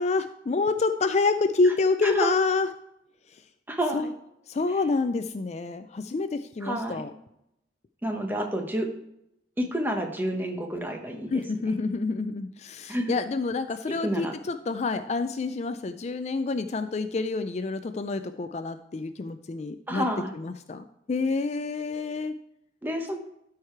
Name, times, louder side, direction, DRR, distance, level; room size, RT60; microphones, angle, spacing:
voice 1, 0.0-2.7 3.9-4.1 4.5-7.1 11.3-20.1 20.3-22.4, left 3 dB, 40° left, 10 dB, 0.4 m, -28 dB
voice 2, 2.0-2.4 3.7-4.1 6.6-7.0 8.0-8.9 9.6-11.3 12.9-13.2 14.0-14.3 19.9-20.3 22.8-23.2, equal, 10° right, 3 dB, 1.0 m, -29 dB
13.0 x 4.8 x 4.5 m, 0.81 s
head